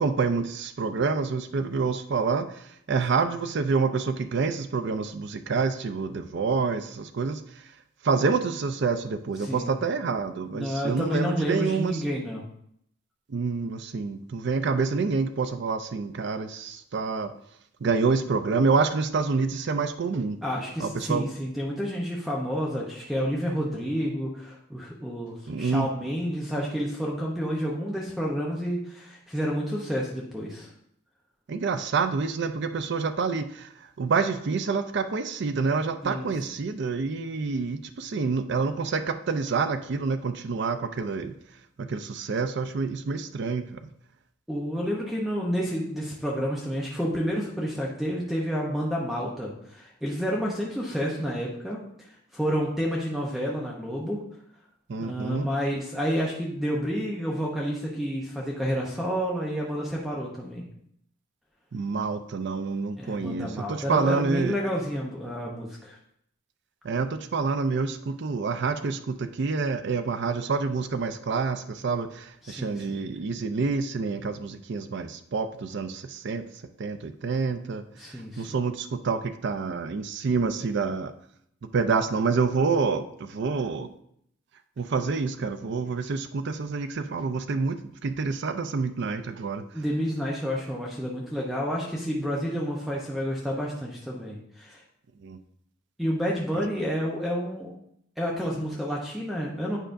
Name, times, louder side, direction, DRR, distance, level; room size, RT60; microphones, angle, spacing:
voice 1, 0.0-7.7 8.0-12.0 13.3-17.3 17.8-20.4 20.8-21.3 25.5-25.9 31.5-41.3 41.8-43.8 54.9-55.5 61.7-64.5 66.8-76.4 76.8-81.1 81.7-83.9 84.8-89.8 95.2-95.4, right 4 dB, 55° right, 9 dB, 0.4 m, -27 dB
voice 2, 9.4-9.7 10.5-12.4 20.4-30.7 36.0-36.3 44.5-51.8 52.1-54.2 55.0-60.6 63.0-66.0 72.4-73.0 78.0-78.5 89.7-94.8 96.0-97.7 98.2-99.8, equal, ahead, -3 dB, 0.7 m, -30 dB
9.0 x 5.0 x 2.6 m, 0.70 s
head